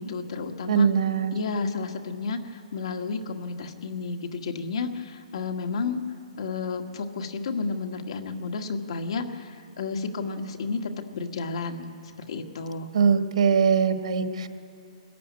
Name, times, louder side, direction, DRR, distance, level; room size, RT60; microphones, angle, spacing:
voice 1, 0.0-0.9 1.3-6.0 6.4-12.9, left 4 dB, 55° left, 5 dB, 1.7 m, -32 dB
voice 2, 0.7-1.3 12.9-14.5, right 6 dB, 60° right, 7 dB, 1.5 m, -21 dB
23.0 x 14.5 x 9.6 m, 2.3 s
hypercardioid pair, 175°, 4 cm